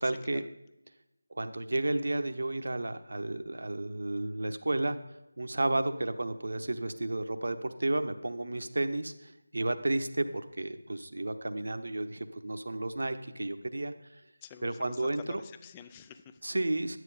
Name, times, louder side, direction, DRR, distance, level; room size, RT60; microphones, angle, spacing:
voice 1, 0.0-0.4 1.3-5.0 5.4-14.2 14.6-15.4 16.4-17.0, right 2 dB, 60° right, 9 dB, 1.0 m, -32 dB
voice 2, 14.4-16.4, left 8 dB, 15° left, 10 dB, 0.4 m, -48 dB
12.0 x 9.7 x 5.0 m, 0.92 s
figure-of-eight pair, 165°, 0 cm